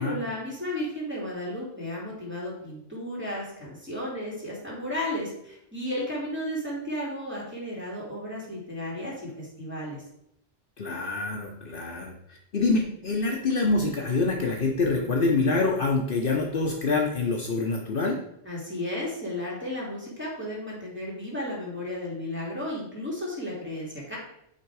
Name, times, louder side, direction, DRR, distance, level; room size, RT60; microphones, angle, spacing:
voice 1, 0.0-10.0 18.4-24.2, left 1 dB, 10° right, -5 dB, 2.5 m, -34 dB
voice 2, 10.8-18.2, left 3 dB, 55° left, 0 dB, 1.0 m, -26 dB
8.7 x 3.6 x 4.7 m, 0.76 s
omnidirectional pair, 1.1 m